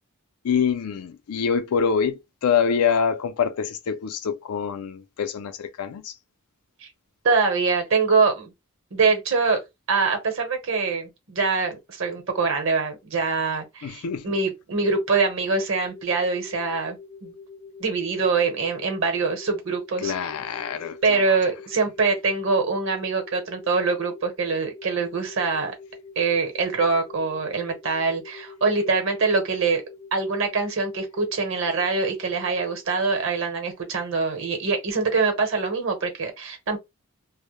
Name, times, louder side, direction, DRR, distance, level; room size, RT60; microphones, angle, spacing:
voice 1, 0.4-6.1 13.8-14.3 20.0-21.4, left 6 dB, 85° left, 0.4 m, -25 dB
voice 2, 7.2-8.5 8.9-9.6 9.9-17.3 17.8-20.1 21.0-25.7 26.2-29.8 30.1-36.8, right 4 dB, 60° right, 0.9 m, -24 dB
sound 1, 15.6-32.8, left 4 dB, 15° left, 0.4 m, -45 dB
2.1 x 2.1 x 3.0 m
head